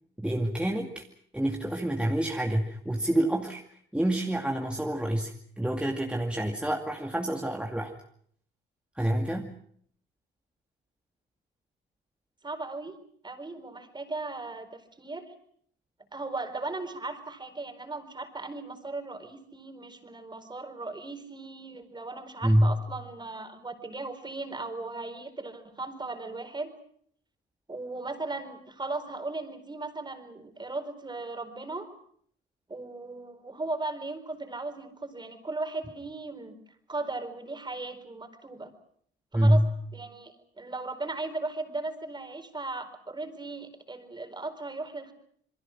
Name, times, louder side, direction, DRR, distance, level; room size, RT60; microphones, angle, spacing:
voice 1, 0.2-1.0 1.3-3.6 3.9-5.3 5.6-7.9 9.0-9.5 22.4-22.7 39.3-39.7, right 1 dB, 5° right, 1 dB, 2.4 m, -26 dB
voice 2, 12.4-13.0 13.2-15.3 16.1-26.7 27.7-31.9 32.7-36.5 36.9-38.7 39.3-39.6 39.9-45.1, right 3 dB, 20° right, 7 dB, 4.4 m, -37 dB
28.5 x 22.0 x 6.1 m, 0.62 s
cardioid pair, 90°, 20 cm